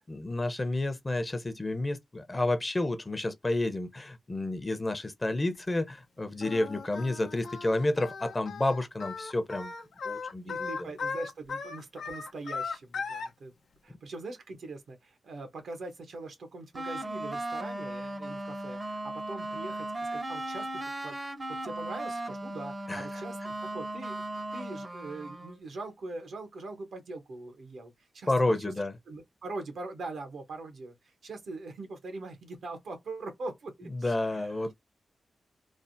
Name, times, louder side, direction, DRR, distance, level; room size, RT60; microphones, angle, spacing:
voice 1, 0.1-9.7 10.0-10.9 22.9-23.2 28.3-28.9 33.9-34.8, left 2 dB, 30° left, 0.7 m, -30 dB
Singing, 6.4-13.3, left 5 dB, 85° left, 0.6 m, -37 dB
voice 2, 10.5-13.5 13.8-21.2 21.5-28.6 29.1-30.9 31.2-34.5, right 2 dB, 75° right, 0.9 m, -42 dB
sound 1, 16.7-25.6, right 1 dB, 35° right, 0.7 m, -37 dB
3.2 x 2.0 x 2.6 m
cardioid pair, 50°, 0 cm